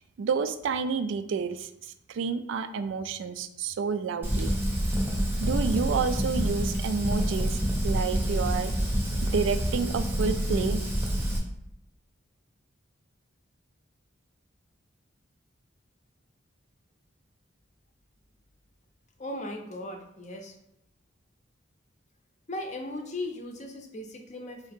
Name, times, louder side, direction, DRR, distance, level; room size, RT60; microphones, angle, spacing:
voice 1, 0.2-4.5 5.4-7.6 7.8-8.7 9.2-10.8, right 5 dB, 65° right, 12 dB, 0.3 m, -29 dB
Fire, 4.2-11.4, equal, 10° right, 0.7 m, -27 dB
voice 2, 19.2-20.5 22.5-24.7, left 1 dB, 35° left, 3 dB, 0.6 m, -37 dB
4.6 x 2.7 x 3.5 m, 0.80 s
head